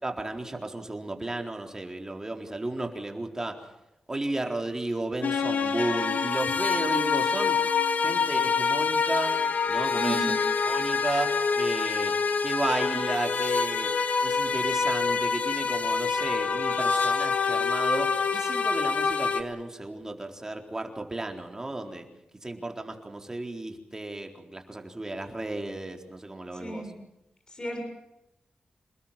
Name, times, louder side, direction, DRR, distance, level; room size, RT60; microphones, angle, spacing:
voice 1, 0.0-3.6 4.1-7.6 7.9-9.3 9.7-10.3 10.6-12.1 12.4-13.9 14.2-22.1 22.4-26.9, right 2 dB, 20° right, 3 dB, 4.0 m, -33 dB
sound 1, 5.2-19.4, left 5 dB, 70° left, 2.2 m, -26 dB
voice 2, 9.9-10.4 26.5-26.9 27.5-27.8, right 1 dB, 30° left, 2 dB, 7.2 m, -33 dB
28.0 x 20.5 x 7.5 m, 0.91 s
wide cardioid pair, 110°, 3 cm